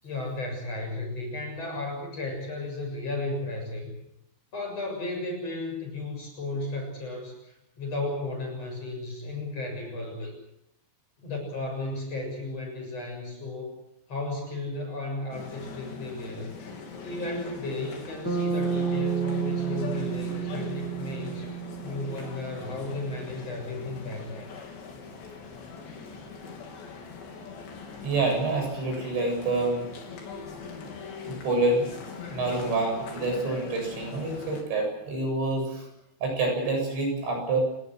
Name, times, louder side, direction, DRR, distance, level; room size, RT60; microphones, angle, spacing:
voice 1, 0.0-3.9 4.5-10.3 11.2-13.7 14.1-16.5 17.0-21.4 21.8-24.5, left 2 dB, 35° left, 3 dB, 7.8 m, -34 dB
sound 1, 15.3-34.6, left 5 dB, 70° left, 5.9 m, -41 dB
Bass guitar, 18.2-22.6, right 6 dB, 25° right, 4.8 m, -30 dB
voice 2, 28.0-29.8 31.2-31.8 32.3-35.9 36.2-37.6, right 2 dB, 70° right, 2 dB, 10.0 m, -27 dB
29.5 x 19.0 x 6.3 m, 0.81 s
omnidirectional pair, 5.4 m